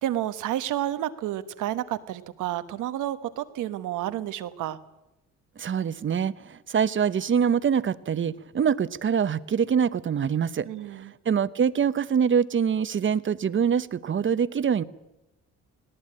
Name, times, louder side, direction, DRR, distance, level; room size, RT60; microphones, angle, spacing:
voice 1, 0.0-4.8 10.6-11.1, right 12 dB, 85° right, 12 dB, 1.3 m, -30 dB
voice 2, 5.6-14.8, right 7 dB, 40° right, 15 dB, 0.9 m, -25 dB
19.0 x 18.0 x 8.8 m, 0.97 s
cardioid pair, 90°, 30 cm